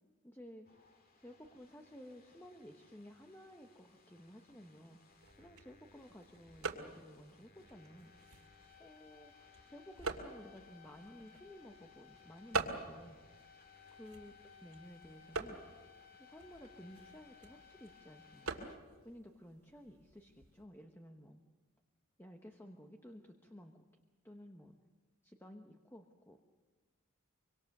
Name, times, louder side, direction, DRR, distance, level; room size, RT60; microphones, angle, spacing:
voice 1, 0.2-0.7 1.2-8.1 8.8-13.2 13.9-15.6 16.2-18.7 19.0-21.4 22.2-23.8 24.2-24.8 25.2-26.4, equal, 10° left, 4 dB, 1.1 m, -55 dB
sound 1, 0.6-18.8, left 6 dB, 45° left, 2.2 m, -62 dB
sound 2, 5.1-20.6, right 3 dB, 80° right, 2.5 m, -46 dB
25.0 x 25.0 x 6.7 m, 1.3 s
head